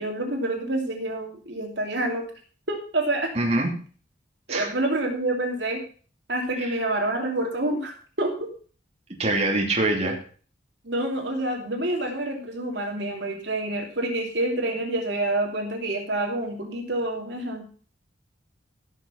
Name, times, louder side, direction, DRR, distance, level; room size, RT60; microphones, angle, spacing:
voice 1, 0.0-2.3 2.7-3.3 4.5-5.8 6.3-8.5 10.0-10.1 10.8-17.6, right 1 dB, 65° right, 2 dB, 3.0 m, -27 dB
voice 2, 3.3-3.7 4.5-4.7 6.6-6.8 9.2-10.2, right 2 dB, 35° right, -1 dB, 2.7 m, -24 dB
16.5 x 6.4 x 5.6 m, 0.41 s
head